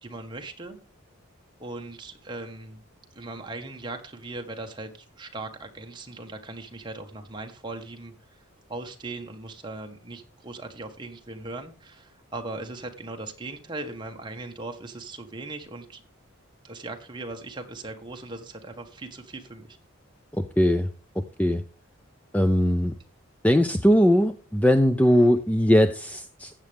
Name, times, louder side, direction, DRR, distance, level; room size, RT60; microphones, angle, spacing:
voice 1, 0.0-0.8 1.6-2.8 3.1-8.4 8.7-16.0 16.6-19.8, right 2 dB, 20° right, 3 dB, 1.5 m, -39 dB
voice 2, 20.3-20.9 21.2-21.6 22.3-22.9 23.4-26.5, equal, 5° left, 10 dB, 0.5 m, -20 dB
15.0 x 8.9 x 3.5 m, 0.37 s
head